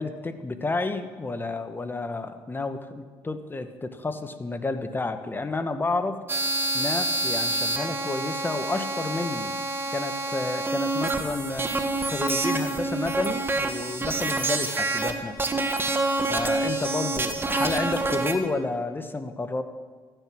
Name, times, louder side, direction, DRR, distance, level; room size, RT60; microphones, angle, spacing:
voice 1, 0.0-6.2 6.7-9.5 9.9-11.7 12.0-15.6 16.3-19.6, left 3 dB, 25° left, 9 dB, 1.1 m, -30 dB
sound 1, 6.3-15.1 15.4-18.4, right 2 dB, 25° right, 1.4 m, -27 dB
14.5 x 9.0 x 6.2 m, 1.5 s
supercardioid pair, 75°, 9 cm